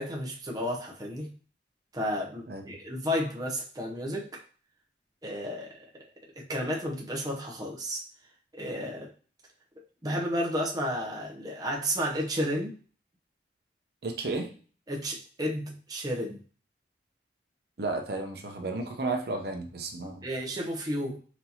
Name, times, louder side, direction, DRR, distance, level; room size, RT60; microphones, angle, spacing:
voice 1, 0.0-1.3 1.9-4.4 5.2-5.9 6.3-8.0 8.5-9.1 10.0-12.8 14.9-16.4 20.2-21.2, equal, 20° right, -1 dB, 0.7 m, -32 dB
voice 2, 14.0-14.5 17.8-20.3, right 3 dB, 60° right, 4 dB, 0.7 m, -33 dB
5.9 x 2.8 x 2.8 m, 0.40 s
head